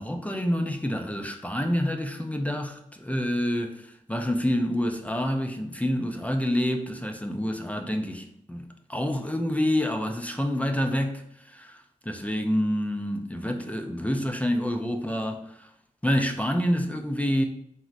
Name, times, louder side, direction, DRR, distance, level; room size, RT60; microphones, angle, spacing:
voice 1, 0.0-15.7 16.0-17.4, equal, 10° left, 0.3 m, -28 dB
3.8 x 2.1 x 2.4 m
cardioid pair, 60°, 14 cm